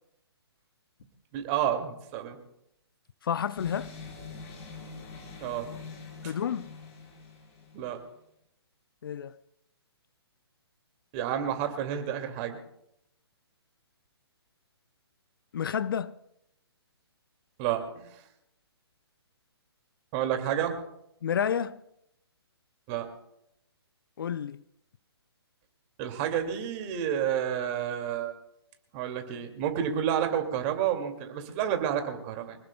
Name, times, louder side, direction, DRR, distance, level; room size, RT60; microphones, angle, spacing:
voice 1, 1.3-2.4 5.4-5.7 6.2-6.3 7.7-8.0 11.1-12.6 17.6-18.1 20.1-20.8 22.9-23.1 26.0-28.3 28.9-32.6, right 9 dB, 30° right, 2.2 m, -30 dB
voice 2, 3.2-3.9 6.2-6.7 9.0-9.4 15.5-16.2 21.2-21.8 24.2-24.6, left 8 dB, 55° left, 0.5 m, -30 dB
sound 1, 3.6-7.9, left 4 dB, 35° left, 4.9 m, -44 dB
25.0 x 18.5 x 2.2 m
figure-of-eight pair, 135°, 14 cm